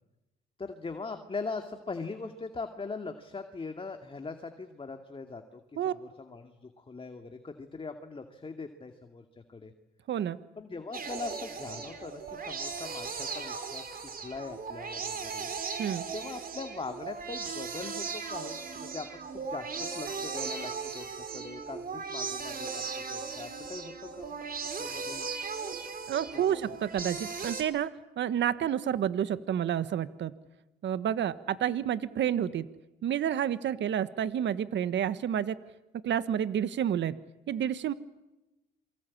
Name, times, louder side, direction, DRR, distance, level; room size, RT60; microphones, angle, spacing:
voice 1, 0.6-9.7 10.6-13.9 14.2-15.5 16.1-22.8 23.1-24.4 24.8-25.3 26.3-26.7, left 4 dB, 25° left, 6 dB, 2.3 m, -41 dB
voice 2, 10.1-10.4 15.8-16.0 26.1-27.9 28.2-30.3 30.8-32.7 33.0-35.6 36.0-37.2 37.5-37.9, right 9 dB, 65° right, 13 dB, 1.4 m, -29 dB
sound 1, 10.9-27.6, right 5 dB, 45° right, 4.8 m, -37 dB
28.0 x 23.5 x 8.6 m, 0.98 s
cardioid pair, 90°, 20 cm